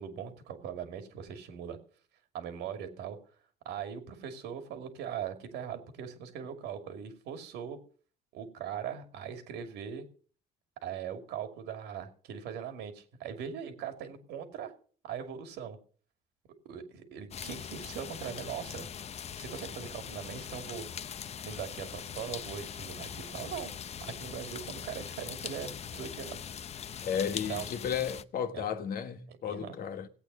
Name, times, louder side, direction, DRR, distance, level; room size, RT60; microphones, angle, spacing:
voice 1, 0.0-1.8 2.3-3.2 3.6-7.8 8.3-10.1 10.8-14.7 15.0-15.8 16.6-18.9 19.4-20.8 21.4-23.7 24.0-26.4 27.3-27.7 28.5-28.7 29.4-29.8, right 8 dB, 85° right, 2.6 m, -40 dB
sound 1, 17.3-28.2, left 8 dB, 40° left, 0.6 m, -41 dB
voice 2, 27.0-30.1, left 8 dB, 60° left, 1.5 m, -33 dB
17.0 x 8.7 x 5.5 m
cardioid pair, 110°, 17 cm